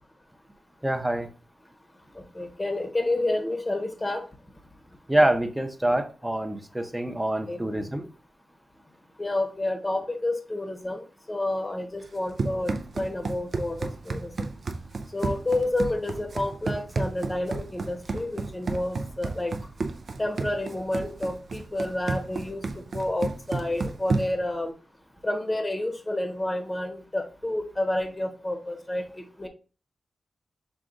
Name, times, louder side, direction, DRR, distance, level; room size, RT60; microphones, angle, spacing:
voice 1, 0.8-1.3 5.1-8.1, right 1 dB, 10° right, 7 dB, 0.7 m, -25 dB
voice 2, 2.3-4.3 7.5-7.6 9.2-14.3 15.1-19.5 20.2-22.6 22.9-24.7 25.2-29.5, left 1 dB, 20° left, 5 dB, 0.9 m, -29 dB
Run, 12.0-24.5, right 3 dB, 55° right, 0.4 m, -32 dB
5.9 x 2.4 x 3.8 m, 0.36 s
cardioid pair, 85°, 0 cm